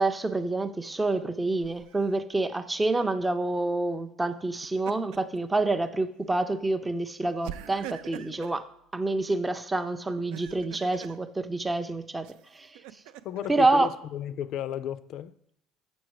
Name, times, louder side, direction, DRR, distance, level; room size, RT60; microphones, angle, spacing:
voice 1, 0.0-8.7 8.9-12.3 12.5-12.7 13.5-13.9, right 2 dB, 10° right, 0.4 m, -27 dB
Laughter, 1.6-2.2 4.4-5.4 5.8-6.0 7.4-8.6 10.1-11.2 12.2-13.5, right 12 dB, 80° right, 0.4 m, -44 dB
voice 2, 13.2-15.3, left 11 dB, 55° left, 0.4 m, -34 dB
7.1 x 6.2 x 4.7 m
cardioid pair, 130°, 0 cm